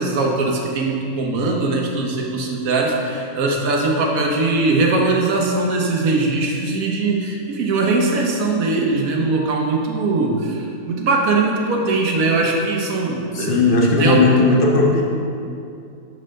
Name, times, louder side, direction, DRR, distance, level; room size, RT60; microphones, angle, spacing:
voice 1, 0.0-13.6 14.0-14.2, right 3 dB, 85° right, 0 dB, 1.3 m, -20 dB
voice 2, 13.3-15.0, left 3 dB, 45° left, -2 dB, 0.9 m, -16 dB
6.4 x 5.1 x 3.3 m, 2.5 s
omnidirectional pair, 1.4 m